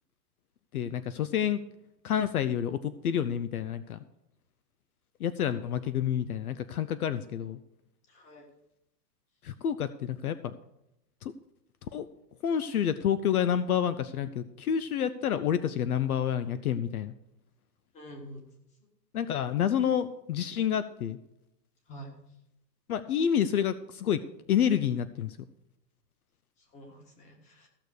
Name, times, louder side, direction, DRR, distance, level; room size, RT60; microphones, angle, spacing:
voice 1, 0.7-1.6 2.0-4.0 5.2-7.6 9.4-10.5 11.2-11.3 11.9-12.1 12.4-17.1 19.1-21.2 22.9-24.2 24.5-25.4, left 9 dB, 60° left, 14 dB, 0.7 m, -28 dB
voice 2, 8.1-8.5 17.9-18.4 21.9-22.1 26.7-27.7, equal, 15° left, 2 dB, 1.7 m, -47 dB
15.0 x 6.8 x 6.3 m, 0.85 s
hypercardioid pair, 170°, 50 cm